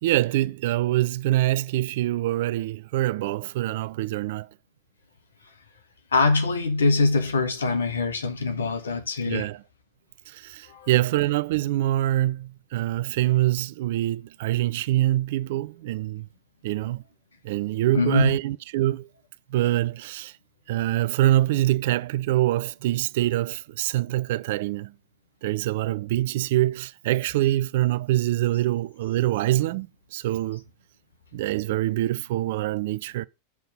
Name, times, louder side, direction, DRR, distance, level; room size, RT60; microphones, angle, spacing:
voice 1, 0.0-4.5 9.3-9.6 10.3-16.3 16.6-17.0 17.4-19.1 19.5-20.3 20.7-24.9 25.4-30.6 31.3-33.2, right 15 dB, 50° right, 0.4 m, -25 dB
voice 2, 6.1-9.5 10.7-10.9 17.9-18.4, left 3 dB, 70° left, 1.3 m, -23 dB
7.3 x 3.6 x 5.4 m
figure-of-eight pair, 90°, 0 cm